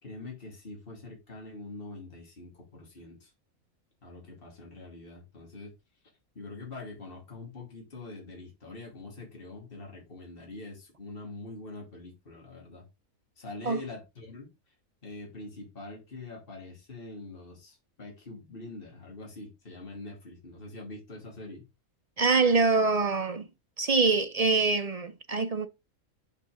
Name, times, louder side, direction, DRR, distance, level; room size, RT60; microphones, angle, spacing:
voice 1, 0.0-3.3 4.0-5.7 6.3-12.9 13.4-14.5 15.0-21.6, left 2 dB, 40° left, 2.9 m, -44 dB
voice 2, 22.2-23.4 23.8-25.7, right 4 dB, 40° right, 0.5 m, -24 dB
6.5 x 5.7 x 3.7 m
omnidirectional pair, 1.5 m